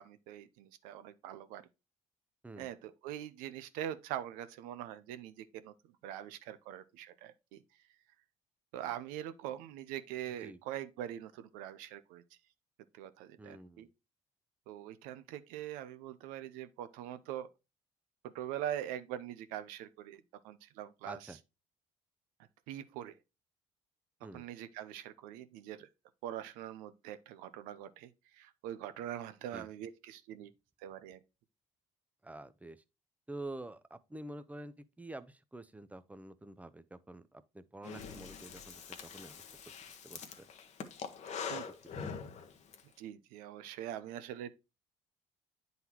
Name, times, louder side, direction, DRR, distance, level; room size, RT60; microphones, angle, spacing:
voice 1, 0.0-1.6 2.6-5.7 6.0-7.6 8.7-12.2 13.0-13.9 14.7-17.5 18.2-21.2 22.7-23.2 24.3-25.9 26.2-30.5 30.8-31.2 41.5-41.6 43.0-44.5, right 11 dB, 80° right, 0.6 m, -43 dB
voice 2, 13.4-13.9 21.0-21.4 24.2-24.5 29.5-29.7 32.2-32.8 33.3-39.4 40.0-40.5, right 1 dB, 10° right, 0.6 m, -48 dB
Breathing, 37.8-42.8, left 6 dB, 55° left, 1.0 m, -44 dB
9.2 x 4.0 x 2.9 m
supercardioid pair, 65°, 14 cm